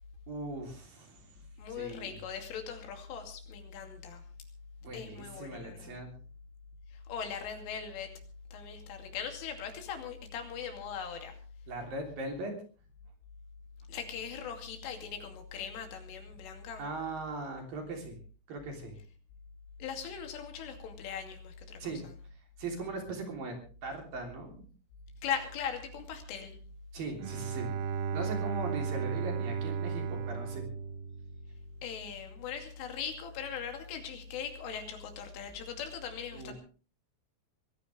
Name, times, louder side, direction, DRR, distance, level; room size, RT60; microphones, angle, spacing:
voice 1, 0.3-2.2 4.8-6.1 11.7-12.5 16.8-18.2 18.5-19.0 21.8-22.0 22.6-23.6 23.8-24.7 26.9-27.8 28.1-30.6 36.3-36.5, right 3 dB, 50° right, 3 dB, 4.7 m, -39 dB
voice 2, 1.6-4.2 4.9-6.0 6.9-8.1 8.5-11.4 13.9-16.8 19.8-21.9 25.2-26.5 31.8-36.5, left 7 dB, 85° left, 4 dB, 5.1 m, -40 dB
Bowed string instrument, 27.2-31.9, right 6 dB, 80° right, 2.4 m, -35 dB
24.0 x 15.0 x 3.4 m, 0.38 s
omnidirectional pair, 5.6 m